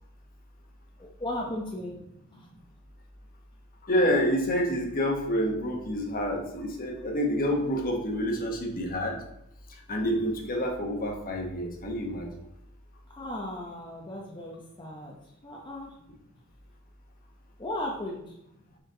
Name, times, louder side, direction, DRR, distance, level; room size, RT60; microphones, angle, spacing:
voice 1, 1.0-2.0 2.3-2.5 13.1-15.2 15.4-15.9 17.6-18.4, left 1 dB, 20° left, -2 dB, 0.7 m, -36 dB
voice 2, 3.8-9.2 9.9-12.3, equal, 45° left, 1 dB, 1.3 m, -28 dB
6.7 x 4.5 x 3.8 m, 0.81 s
head